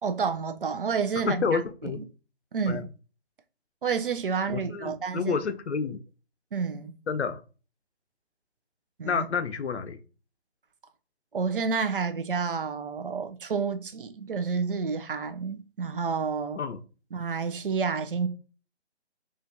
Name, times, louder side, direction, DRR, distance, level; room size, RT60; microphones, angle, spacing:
voice 1, 0.0-2.0 2.5-2.9 3.8-5.4 6.5-6.9 9.0-9.3 11.3-16.6 17.1-18.3, right 5 dB, 55° right, 0.5 m, -29 dB
voice 2, 1.2-2.0 2.7-2.8 4.5-6.0 7.1-7.4 9.1-10.0 16.6-16.8, left 6 dB, 80° left, 0.6 m, -29 dB
4.3 x 2.5 x 2.6 m
figure-of-eight pair, 155°, 33 cm